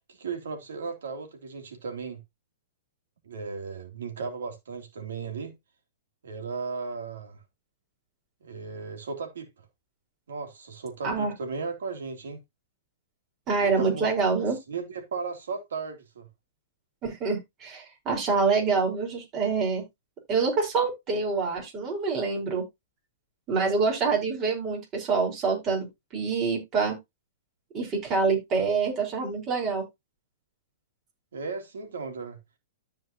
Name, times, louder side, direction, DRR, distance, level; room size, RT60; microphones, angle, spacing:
voice 1, 0.1-2.2 3.2-5.5 6.2-7.4 8.4-9.5 10.3-12.4 13.6-14.1 14.7-16.3 31.3-32.4, right 4 dB, 80° right, 3.2 m, -36 dB
voice 2, 13.5-14.6 17.0-19.8 20.3-22.6 23.5-25.9 26.1-27.0 27.7-29.8, right 4 dB, 30° right, 4.9 m, -26 dB
13.5 x 5.1 x 3.0 m
hypercardioid pair, 135°, 0 cm